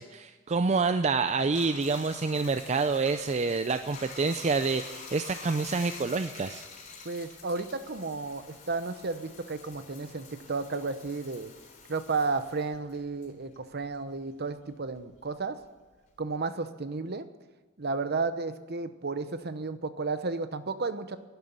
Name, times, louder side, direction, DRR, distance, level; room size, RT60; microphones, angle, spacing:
voice 1, 0.0-6.6, right 4 dB, 35° right, 10 dB, 0.5 m, -27 dB
Bathtub (filling or washing), 1.3-14.2 14.5-16.3, left 4 dB, 45° left, 3.7 m, -47 dB
voice 2, 7.0-11.5 11.9-15.6 16.2-17.3 17.8-21.2, right 3 dB, 55° right, 11 dB, 0.9 m, -33 dB
11.5 x 11.0 x 9.4 m, 1.3 s
head